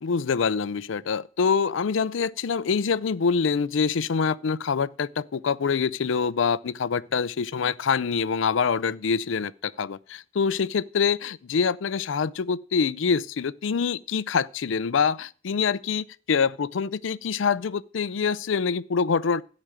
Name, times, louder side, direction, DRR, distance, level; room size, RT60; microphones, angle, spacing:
voice 1, 0.0-19.4, left 5 dB, 75° left, 0.5 m, -25 dB
13.5 x 5.1 x 9.0 m
head